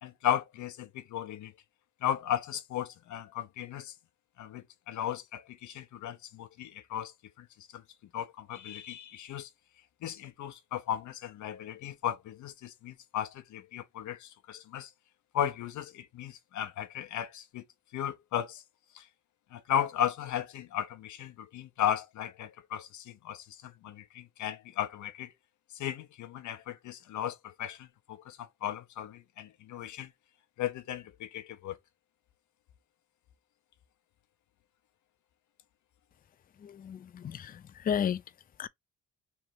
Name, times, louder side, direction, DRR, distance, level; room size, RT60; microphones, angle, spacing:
voice 1, 0.0-1.5 2.0-3.9 4.4-7.1 7.4-7.5 7.7-7.8 8.1-9.5 10.0-14.9 15.3-17.6 17.9-18.6 18.9-19.1 19.5-25.3 25.7-30.1 30.6-31.8, left 10 dB, 75° left, 0.8 m, -35 dB
voice 2, 36.6-38.2 38.6-38.7, left 8 dB, 30° left, 0.4 m, -33 dB
3.3 x 2.7 x 4.6 m
cardioid pair, 90°, 30 cm